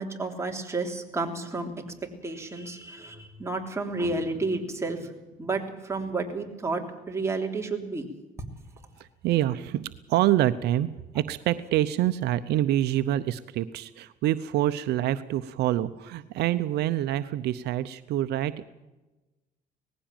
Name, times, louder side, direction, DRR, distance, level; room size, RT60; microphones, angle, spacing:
voice 1, 0.0-1.7 2.2-8.1, right 3 dB, 15° right, 2 dB, 3.3 m, -31 dB
voice 2, 9.0-9.8 10.1-18.7, right 13 dB, 75° right, 12 dB, 0.8 m, -26 dB
19.0 x 15.5 x 9.0 m, 1.1 s
cardioid pair, 110°, 17 cm